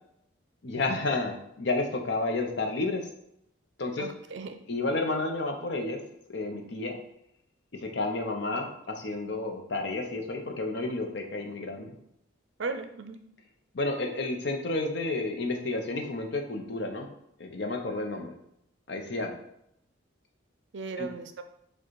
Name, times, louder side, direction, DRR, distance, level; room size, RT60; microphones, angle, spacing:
voice 1, 0.6-3.1 3.8-4.1 4.7-6.0 6.3-7.0 7.8-11.9 13.7-17.1 17.4-18.3 18.9-19.4 21.0-21.1, left 2 dB, 60° left, 3 dB, 0.7 m, -31 dB
voice 2, 4.0-4.6 12.6-13.2 20.7-21.4, right 4 dB, 65° right, 8 dB, 0.5 m, -36 dB
4.8 x 2.3 x 4.6 m, 0.77 s
head